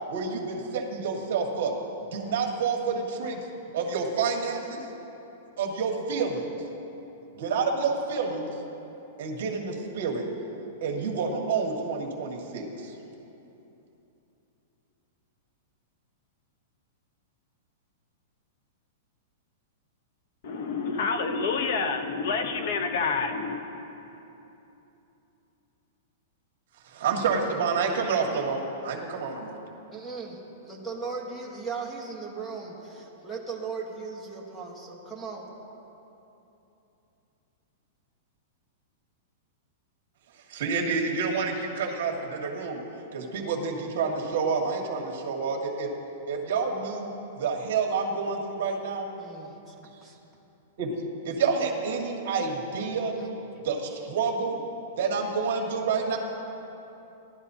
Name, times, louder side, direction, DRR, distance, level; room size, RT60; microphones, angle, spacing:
voice 1, 0.1-1.7 2.1-3.4 3.7-4.8 5.6-6.4 7.3-8.5 9.2-10.2 10.8-12.9 26.9-29.6 40.5-42.8 43.1-45.9 46.3-49.1 50.8-50.9 51.2-53.1 53.6-54.6 55.0-56.2, right 5 dB, 55° right, 0 dB, 1.8 m, -28 dB
voice 2, 20.4-23.6, left 4 dB, 50° left, 7 dB, 0.9 m, -28 dB
voice 3, 29.9-35.5 49.2-49.7 50.0-50.2 53.1-53.3, right 4 dB, 5° left, -2 dB, 1.3 m, -37 dB
18.0 x 11.5 x 2.8 m, 3.0 s
supercardioid pair, 170°, 0 cm